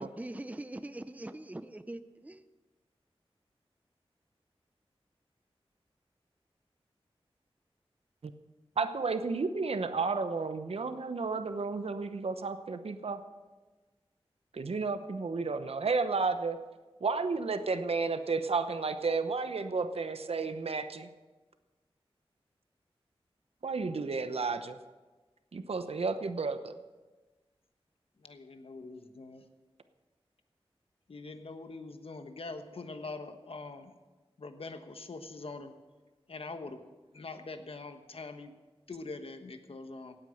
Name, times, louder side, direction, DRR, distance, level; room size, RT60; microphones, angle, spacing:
voice 1, 0.0-2.4, right 1 dB, 15° right, 11 dB, 0.6 m, -42 dB
voice 2, 8.8-13.2 14.5-16.6 17.0-21.1 23.6-24.8 25.5-26.8, right 4 dB, 75° right, 10 dB, 0.9 m, -32 dB
voice 3, 28.2-29.4 31.1-33.9 34.4-35.7 36.3-36.8 37.1-38.5 38.9-40.1, left 3 dB, 65° left, 8 dB, 1.2 m, -43 dB
16.5 x 8.8 x 6.5 m, 1.3 s
wide cardioid pair, 70°, 10 cm